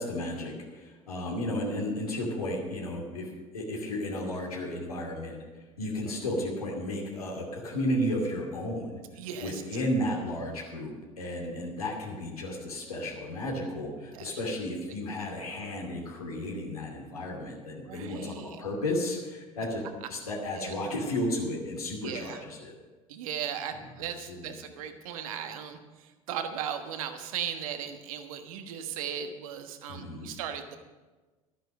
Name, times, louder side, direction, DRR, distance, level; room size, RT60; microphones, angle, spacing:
voice 1, 0.0-3.3 3.5-5.4 5.8-9.0 9.4-19.8 20.1-22.7 23.7-24.5 29.9-30.3, left 1 dB, 85° left, -2 dB, 2.6 m, -33 dB
voice 2, 9.2-9.6 14.1-14.3 17.9-18.6 20.6-20.7 22.0-22.4 23.1-25.8 26.3-30.8, right 8 dB, 70° right, 7 dB, 1.3 m, -37 dB
12.5 x 9.9 x 6.5 m, 1.3 s
hypercardioid pair, 70°, 18 cm